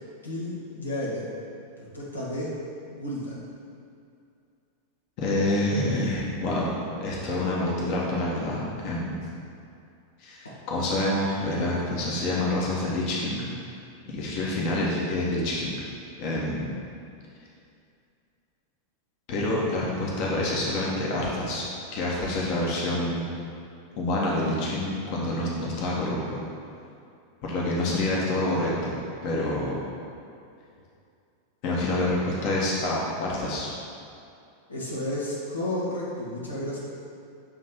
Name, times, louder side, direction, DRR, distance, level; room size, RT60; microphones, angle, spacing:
voice 1, 0.2-1.3 1.8-2.5 2.9-3.4 10.4-10.5 34.7-36.8, left 1 dB, 80° left, -6 dB, 1.1 m, -32 dB
voice 2, 5.2-9.2 10.2-13.4 14.1-15.8 16.2-16.7 19.3-21.6 21.9-23.3 24.0-26.4 27.4-28.9 29.2-29.8 31.6-33.7, left 1 dB, 45° left, -4 dB, 1.0 m, -27 dB
7.0 x 3.2 x 4.2 m, 2.5 s
figure-of-eight pair, 90°, 0 cm